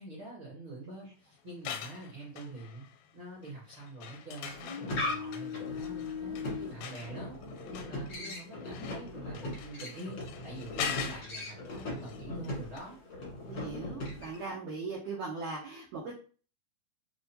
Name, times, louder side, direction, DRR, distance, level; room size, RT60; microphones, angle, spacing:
voice 1, 0.0-2.8 3.1-7.4 7.6-13.0, right 2 dB, 55° right, -6 dB, 1.5 m, -45 dB
sound 1, 1.5-3.1 3.4-12.5 12.8-12.9, left 8 dB, 85° left, 2.4 m, -43 dB
sound 2, 4.5-14.5, left 2 dB, 65° left, 1.1 m, -39 dB
voice 2, 13.5-16.1, right 4 dB, 85° right, -4 dB, 1.6 m, -39 dB
6.1 x 2.1 x 2.8 m, 0.38 s
omnidirectional pair, 4.3 m